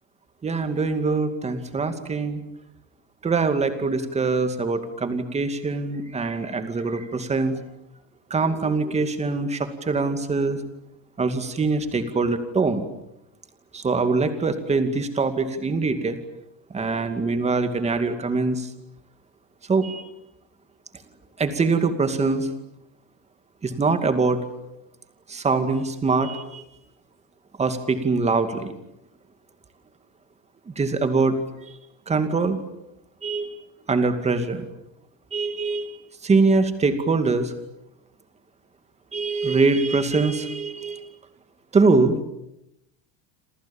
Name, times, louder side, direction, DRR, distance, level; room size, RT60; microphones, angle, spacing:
voice 1, 0.4-2.4 3.2-7.5 8.3-10.6 11.2-12.9 13.7-16.2 16.7-18.7 19.7-20.1 21.4-22.5 23.6-24.4 25.3-26.6 27.6-28.7 30.7-31.4 31.6-31.7 32.1-32.6 33.2-33.5 33.9-34.7 35.3-35.9 36.2-37.5 39.1-41.0 41.7-42.2, right 4 dB, 15° right, 8 dB, 2.4 m, -23 dB
29.0 x 27.0 x 7.3 m, 0.84 s
cardioid pair, 170°, 48 cm